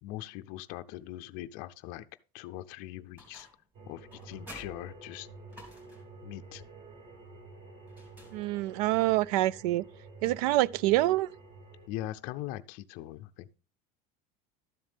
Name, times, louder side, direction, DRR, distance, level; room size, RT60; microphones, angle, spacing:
voice 1, 0.0-2.1 2.3-3.5 3.9-5.3 6.2-6.6 10.2-10.4 11.9-13.5, left 14 dB, 45° left, 0.5 m, -41 dB
sound 1, 3.2-3.7 4.1-6.2 7.9-8.8, equal, 10° right, 3.1 m, -52 dB
sound 2, 3.7-11.9, right 3 dB, 30° right, 1.4 m, -50 dB
voice 2, 8.3-9.8 10.2-11.3, right 17 dB, 85° right, 0.4 m, -26 dB
12.5 x 7.4 x 3.4 m
cardioid pair, 175°, 19 cm